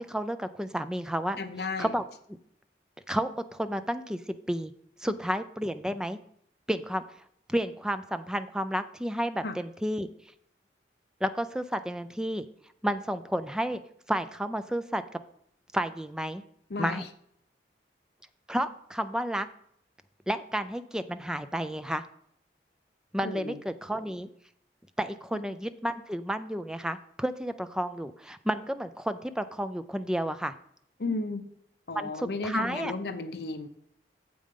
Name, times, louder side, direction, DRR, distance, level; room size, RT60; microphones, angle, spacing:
voice 1, 0.0-2.0 3.1-4.2 4.5-4.7 5.0-6.2 6.7-7.0 7.5-10.1 11.2-12.4 12.8-13.8 14.1-15.2 15.7-16.4 16.8-17.1 18.5-19.5 20.3-22.0 23.1-24.3 25.0-30.5 31.9-32.9, equal, 5° right, 11 dB, 0.4 m, -31 dB
voice 2, 1.4-1.9 9.4-9.6 16.7-17.0 23.2-23.6 31.0-31.4 31.9-33.7, left 3 dB, 65° left, 9 dB, 0.7 m, -33 dB
8.5 x 7.6 x 3.7 m, 0.71 s
head